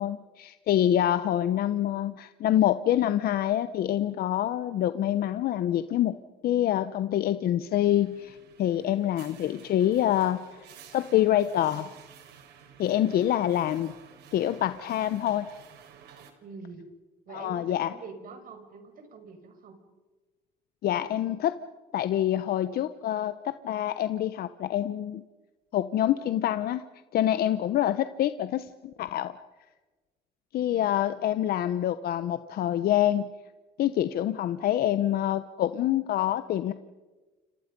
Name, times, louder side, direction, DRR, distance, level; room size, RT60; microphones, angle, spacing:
voice 1, 0.0-6.2 6.4-10.4 10.9-11.9 12.8-13.9 14.3-15.5 17.3-17.9 20.8-21.5 21.9-25.2 25.7-26.8 27.1-29.3 30.5-33.3 33.8-36.7, left 12 dB, 65° left, 11 dB, 1.0 m, -26 dB
sound 1, 7.7-16.3, right 8 dB, 80° right, 3.8 m, -52 dB
voice 2, 16.4-16.9 17.3-19.8 30.6-30.8, right 4 dB, 55° right, 6 dB, 5.6 m, -45 dB
30.0 x 27.5 x 5.4 m, 1.2 s
cardioid pair, 110°, 17 cm